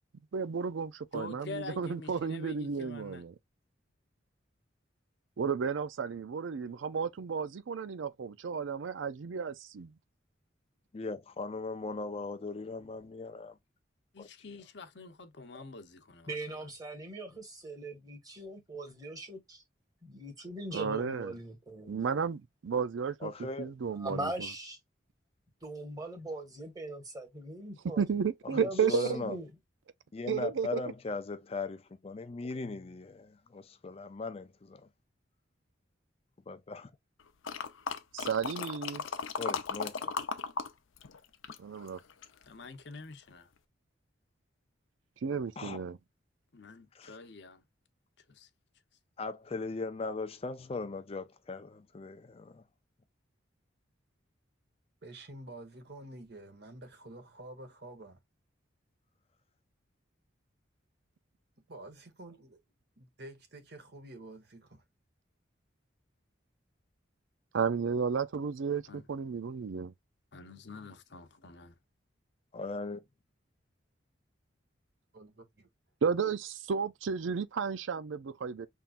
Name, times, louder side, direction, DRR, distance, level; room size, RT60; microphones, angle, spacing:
voice 1, 0.3-3.3 5.4-9.9 20.7-21.3 21.9-23.3 23.6-24.5 28.0-29.2 30.3-30.8 38.1-39.0 41.6-42.0 45.2-46.0 67.5-69.9 76.0-78.7, right 6 dB, 75° right, 0.4 m, -33 dB
voice 2, 1.1-3.2 14.1-16.7 42.5-43.5 46.5-47.6 48.3-48.5 68.9-69.0 70.3-71.8, left 3 dB, 60° left, 0.8 m, -46 dB
voice 3, 10.9-13.6 14.2-14.3 23.2-23.7 28.4-28.6 28.9-29.4 30.1-34.9 36.5-36.9 39.4-40.1 45.6-45.8 46.9-47.2 49.2-52.6 72.5-73.0, left 3 dB, 30° left, 0.4 m, -39 dB
voice 4, 16.3-19.6 20.0-22.0 24.0-24.8 25.6-28.0 28.5-29.5, right 1 dB, 20° right, 1.6 m, -40 dB
sound 1, 37.4-40.7 41.0-42.4 42.9-43.0, left 5 dB, 90° left, 0.7 m, -36 dB
voice 5, 55.0-58.2 61.7-62.6 63.0-64.8 75.1-75.7, right 1 dB, 55° right, 1.4 m, -49 dB
5.7 x 3.7 x 2.5 m
head